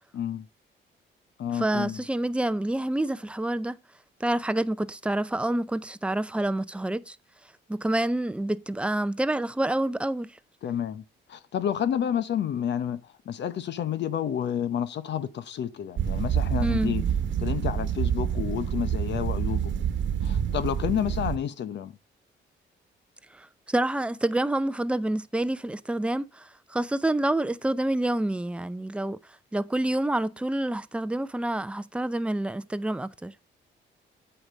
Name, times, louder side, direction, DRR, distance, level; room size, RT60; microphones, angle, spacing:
voice 1, 0.1-0.5 1.4-2.0 10.6-11.0 11.3-13.0 13.3-17.0 17.4-19.7 20.2-22.0, left 9 dB, 65° left, 0.9 m, -30 dB
voice 2, 1.5-3.8 4.2-7.2 7.7-10.3 16.6-16.9 23.3-29.2 29.5-33.3, right 1 dB, 5° right, 0.6 m, -28 dB
sound 1, 16.0-21.4, right 8 dB, 70° right, 1.2 m, -27 dB
8.7 x 4.8 x 6.4 m
cardioid pair, 90°, 20 cm